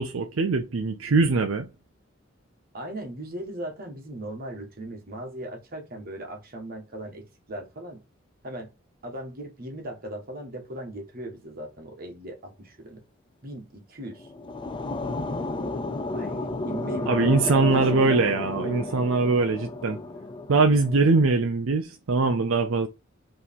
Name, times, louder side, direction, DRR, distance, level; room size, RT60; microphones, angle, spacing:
voice 1, 0.0-1.7 17.1-20.0 20.5-22.9, right 3 dB, 80° right, 0.5 m, -22 dB
voice 2, 2.7-8.0 8.4-8.7 9.0-13.0 13.4-14.3 16.1-17.2 17.5-17.9, right 1 dB, 50° right, 1.4 m, -38 dB
sound 1, 14.1-21.2, left 2 dB, 25° left, 0.5 m, -32 dB
4.6 x 3.2 x 3.6 m
head